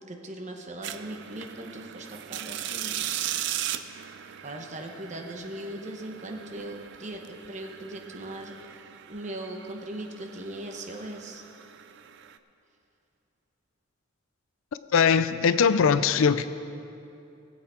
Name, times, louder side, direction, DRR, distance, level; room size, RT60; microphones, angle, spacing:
voice 1, 0.0-3.4 4.4-8.8 9.1-11.4, right 1 dB, 35° right, 3 dB, 1.0 m, -39 dB
sound 1, 0.8-12.4, right 11 dB, 60° right, 0.4 m, -38 dB
voice 2, 14.9-16.5, left 6 dB, 75° left, 13 dB, 0.4 m, -21 dB
18.5 x 7.7 x 4.4 m, 2.7 s
head